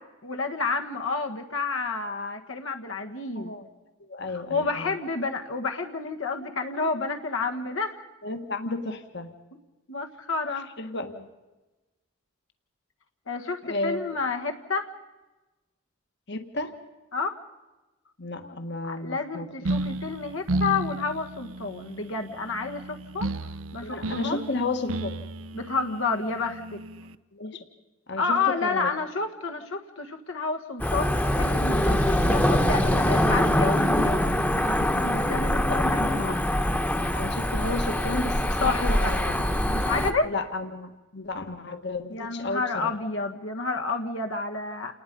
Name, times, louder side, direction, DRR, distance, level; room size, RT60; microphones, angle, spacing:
voice 1, 0.2-3.5 4.5-8.1 9.9-10.7 13.3-14.9 17.1-17.4 18.9-23.3 23.7-24.4 25.5-26.8 28.2-34.3 34.7-36.4 38.6-39.2 39.7-40.3 42.1-44.9, left 4 dB, 75° left, 4 dB, 1.6 m, -30 dB
voice 2, 3.3-3.7 4.0-5.0 8.2-9.3 10.8-11.3 13.6-14.0 16.3-16.7 18.2-19.5 23.8-25.3 27.3-27.6 28.1-28.9 35.7-35.8 36.2-36.4 37.1-39.5 40.2-42.9, left 2 dB, 60° left, 7 dB, 1.7 m, -33 dB
sound 1, 19.6-27.1, right 2 dB, 80° right, 0.7 m, -33 dB
Cricket / Motor vehicle (road), 30.8-40.1, left 1 dB, 10° left, 1.2 m, -24 dB
29.0 x 19.5 x 5.4 m, 1.1 s
head